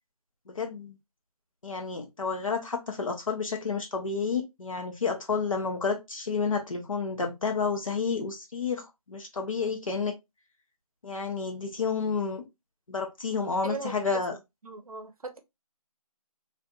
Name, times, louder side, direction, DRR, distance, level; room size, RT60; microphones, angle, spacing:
voice 1, 0.5-0.9 1.6-10.1 11.0-12.4 12.9-14.4, left 5 dB, 60° left, 0.9 m, -30 dB
voice 2, 13.6-14.2 14.6-15.4, right 4 dB, 70° right, 0.6 m, -38 dB
2.6 x 2.5 x 2.2 m
figure-of-eight pair, 170°, 19 cm